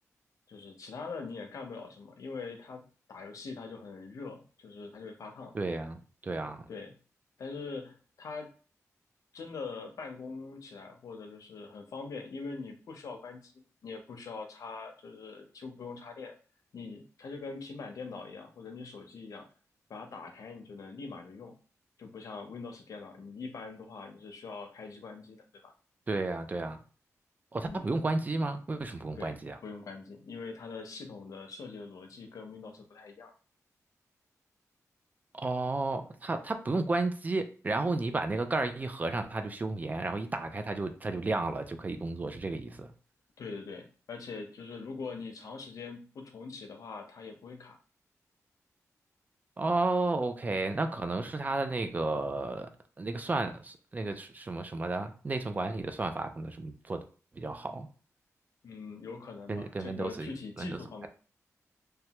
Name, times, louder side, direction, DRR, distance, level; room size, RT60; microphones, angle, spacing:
voice 1, 0.5-2.8 3.1-5.5 6.7-6.9 7.4-8.5 9.3-16.4 16.7-19.5 19.9-21.5 22.0-25.4 25.6-25.7 27.7-27.9 29.2-29.4 29.6-33.3 43.4-47.8 58.6-61.1, left 4 dB, 85° left, 4 dB, 0.6 m, -43 dB
voice 2, 5.5-6.6 26.1-26.8 27.5-29.6 35.3-42.9 49.6-52.7 53.0-57.0 57.4-57.9 59.5-60.3 60.6-60.8, right 2 dB, 30° right, 7 dB, 0.4 m, -32 dB
3.2 x 2.2 x 2.9 m, 0.38 s
wide cardioid pair, 125°, 6 cm